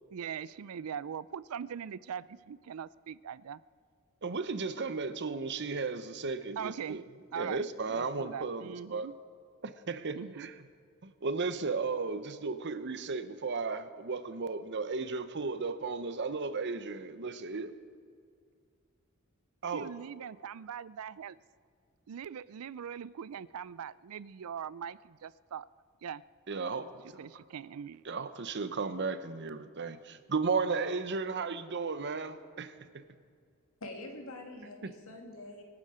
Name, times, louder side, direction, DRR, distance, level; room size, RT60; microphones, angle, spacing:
voice 1, 0.1-3.6 6.6-7.0 7.3-7.6 7.9-9.1 10.1-10.5 19.7-21.4 22.1-25.7 26.0-26.2 27.2-28.0, right 7 dB, 75° right, 19 dB, 0.4 m, -41 dB
voice 2, 4.2-7.0 7.3-9.1 9.6-10.5 11.0-17.7 19.6-19.9 26.5-27.4 28.0-32.7 34.8-34.9, right 4 dB, 55° right, 12 dB, 0.8 m, -35 dB
voice 3, 33.8-35.6, left 2 dB, 65° left, 2 dB, 2.5 m, -45 dB
24.5 x 9.9 x 5.0 m, 2.2 s
head